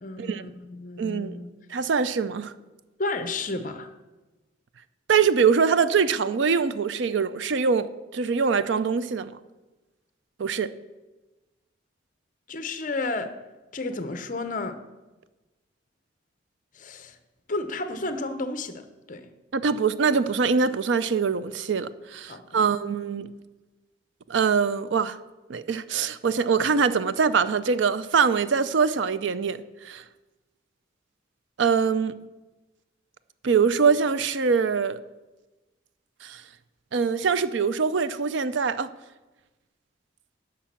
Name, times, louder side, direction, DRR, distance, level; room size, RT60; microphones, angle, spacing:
voice 1, 0.0-1.5 3.0-3.9 12.5-13.3 13.7-14.8 16.7-17.2 17.5-19.3 22.3-22.6, left 2 dB, 40° left, 0.7 m, -32 dB
voice 2, 1.0-1.3 1.7-2.5 5.1-9.3 10.4-10.7 19.5-23.3 24.3-25.2 25.5-30.0 31.6-32.2 33.4-35.0 36.2-36.4 36.9-38.9, right 5 dB, 70° right, 0.5 m, -23 dB
10.0 x 6.0 x 7.3 m
head